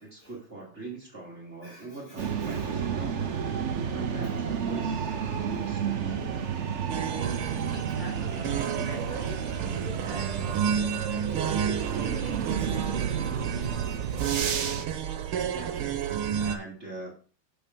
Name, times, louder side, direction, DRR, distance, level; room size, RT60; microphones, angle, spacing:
voice 1, 0.0-3.3 3.9-6.4 15.4-16.0 16.4-17.1, right 2 dB, 30° right, -2 dB, 2.9 m, -43 dB
voice 2, 1.6-2.7 4.8-5.0 7.7-11.2 12.0-13.2, left 1 dB, 35° left, -4 dB, 3.0 m, -45 dB
sound 1, 2.2-14.9, right 7 dB, 50° right, 0.8 m, -31 dB
sound 2, 6.9-16.6, right 8 dB, 85° right, 1.9 m, -31 dB
7.0 x 7.0 x 6.1 m, 0.41 s
omnidirectional pair, 2.3 m